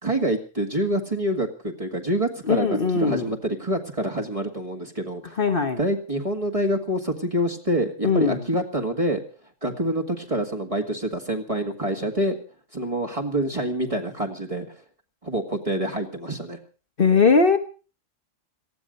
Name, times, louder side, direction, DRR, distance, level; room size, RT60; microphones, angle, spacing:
voice 1, 0.0-5.4 5.8-9.2 9.6-12.4 12.7-14.8 15.2-16.6, right 1 dB, 25° right, 2 dB, 2.1 m, -26 dB
voice 2, 2.4-3.3 5.4-5.8 8.0-8.4 17.0-17.6, left 4 dB, 45° left, 7 dB, 1.3 m, -20 dB
18.5 x 14.5 x 5.3 m, 0.38 s
omnidirectional pair, 1.3 m